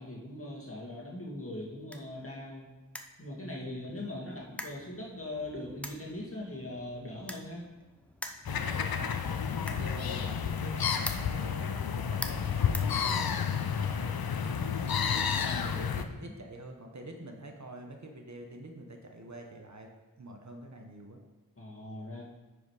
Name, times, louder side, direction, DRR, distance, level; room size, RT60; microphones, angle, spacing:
voice 1, 0.0-2.7 3.2-7.6 15.1-16.3 21.6-22.2, left 1 dB, 40° left, -3 dB, 1.9 m, -41 dB
sound 1, 1.3-13.6, equal, 5° left, 0.6 m, -47 dB
voice 2, 3.4-3.9 8.5-9.4 9.8-14.6 15.1-19.9 20.2-21.2, right 2 dB, 50° right, 3 dB, 1.0 m, -47 dB
sound 2, 8.4-16.1, left 7 dB, 80° left, 0.6 m, -31 dB
9.0 x 5.0 x 4.8 m, 1.1 s
wide cardioid pair, 75°, 36 cm